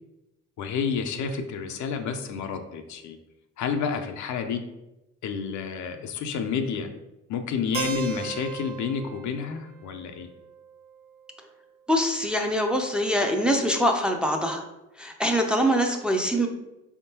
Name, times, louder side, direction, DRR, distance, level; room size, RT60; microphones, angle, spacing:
voice 1, 0.6-3.2 3.6-4.6 5.2-6.9 7.3-10.3, left 6 dB, 70° left, 6 dB, 0.6 m, -30 dB
Keyboard (musical), 7.7-11.6, right 7 dB, 50° right, 0.6 m, -37 dB
voice 2, 11.9-14.6 15.0-16.5, equal, 5° right, 2 dB, 0.5 m, -24 dB
4.2 x 3.6 x 2.8 m, 0.96 s
cardioid pair, 90°, 30 cm